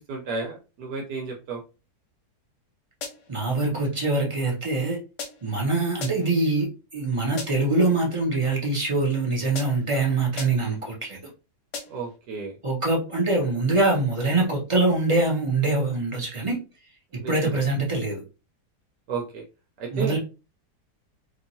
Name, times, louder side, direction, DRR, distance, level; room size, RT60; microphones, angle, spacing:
voice 1, 0.1-1.6 11.9-12.5 17.2-17.6 19.1-19.4 19.8-20.2, right 4 dB, 80° right, -1 dB, 1.2 m, -32 dB
sound 1, 3.0-3.4 5.2-5.6 6.0-6.4 7.4-7.8 9.5-10.0 10.4-10.8 11.7-12.2, left 4 dB, 60° left, 0.8 m, -38 dB
voice 2, 3.3-5.0 5.4-11.2 12.6-16.6 17.3-18.2 19.9-20.2, right 2 dB, 45° right, -2 dB, 0.4 m, -24 dB
2.9 x 2.4 x 2.6 m, 0.31 s
omnidirectional pair, 1.7 m